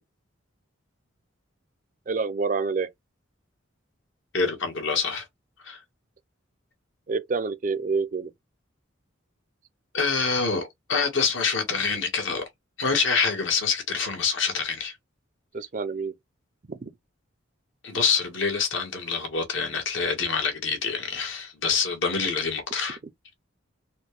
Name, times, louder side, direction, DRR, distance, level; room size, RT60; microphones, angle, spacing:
voice 1, 2.1-2.9 7.1-8.3 15.5-16.1 16.7-16.9, right 4 dB, 40° right, 0.4 m, -27 dB
voice 2, 4.3-5.3 5.6-5.8 9.9-12.4 12.8-15.0 17.8-23.0, left 5 dB, 70° left, 1.4 m, -26 dB
4.2 x 2.2 x 3.1 m
head